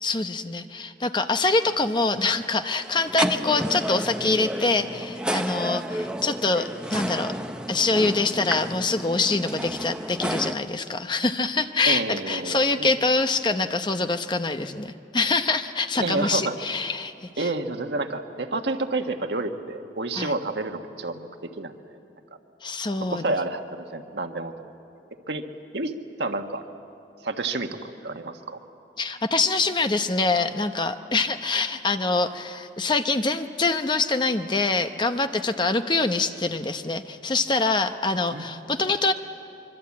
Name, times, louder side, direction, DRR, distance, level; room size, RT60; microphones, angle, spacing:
voice 1, 0.0-7.3 7.7-17.5 20.1-20.3 22.6-23.2 29.0-39.1, left 3 dB, 25° left, 8 dB, 0.8 m, -25 dB
sound 1, 1.7-10.6, right 1 dB, 5° right, 0.7 m, -31 dB
voice 2, 11.9-12.9 16.0-16.5 17.4-21.3 21.6-21.7 23.1-24.7 25.3-25.4 25.7-25.9 26.2-26.6 27.2-28.6 38.3-38.5, right 2 dB, 85° right, 5 dB, 1.5 m, -29 dB
25.0 x 23.5 x 8.6 m, 2.6 s
head